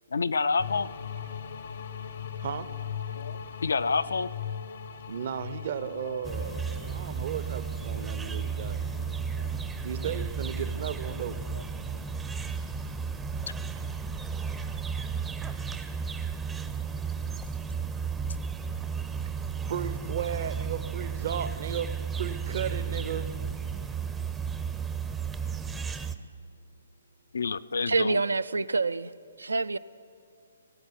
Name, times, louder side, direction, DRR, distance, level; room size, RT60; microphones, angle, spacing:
voice 1, 0.1-0.9 3.2-4.3 5.9-7.0 7.9-9.5 11.5-11.6 27.3-28.2, left 4 dB, 70° left, 0.4 m, -31 dB
sound 1, 0.6-13.1, left 8 dB, 55° left, 0.7 m, -41 dB
voice 2, 5.1-6.6 6.8-8.8 9.8-11.4 19.7-21.9 22.2-23.3, right 8 dB, 50° right, 0.7 m, -34 dB
sound 2, 6.2-26.1, right 6 dB, 10° right, 0.5 m, -33 dB
voice 3, 27.9-29.1 29.4-29.8, right 3 dB, 80° right, 0.3 m, -26 dB
18.0 x 8.0 x 7.2 m
figure-of-eight pair, 135°, 0 cm